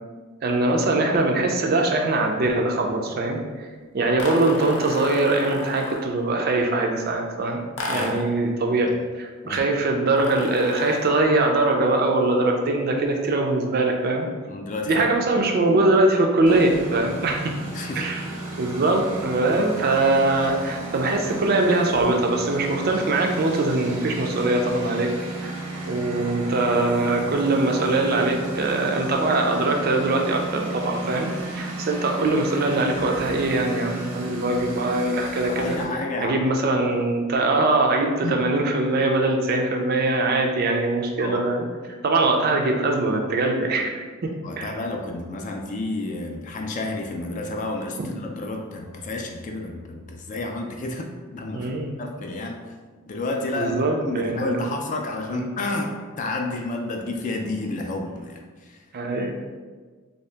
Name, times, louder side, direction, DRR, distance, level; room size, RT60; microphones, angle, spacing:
voice 1, 0.4-3.4 3.9-7.6 7.9-8.9 9.2-14.3 14.9-17.5 18.0-18.2 18.6-25.1 25.4-25.6 25.9-35.8 36.2-41.7 42.0-43.9 44.2-44.3 44.6-44.7 48.0-48.1 51.5-52.0 53.5-54.7 55.3-55.4 58.9-59.3, right 2 dB, 45° right, 2 dB, 0.4 m, -22 dB
sound 1, 4.2-6.2 7.8-8.4 10.2-11.2, left 1 dB, 85° left, 0.6 m, -33 dB
voice 2, 14.5-15.0 15.3-15.5 17.7-18.0 18.3-18.4 35.4-36.6 37.3-37.4 38.2-38.4 41.2-41.4 44.4-51.7 52.0-52.6 53.1-53.8 54.0-58.8, left 2 dB, 35° left, 2 dB, 0.3 m, -30 dB
Engine, 16.5-35.8, right 2 dB, 85° right, 0.8 m, -34 dB
3.1 x 2.8 x 3.3 m, 1.4 s
head